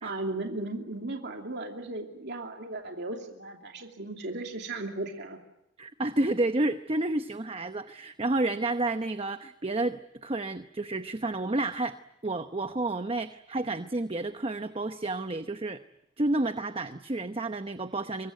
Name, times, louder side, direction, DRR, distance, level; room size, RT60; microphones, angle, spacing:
voice 1, 0.0-5.4, right 2 dB, 60° right, 2 dB, 2.7 m, -36 dB
voice 2, 5.8-12.0 12.2-15.8 16.2-18.3, right 2 dB, 30° right, 9 dB, 0.9 m, -30 dB
25.0 x 21.5 x 9.4 m, 0.85 s
head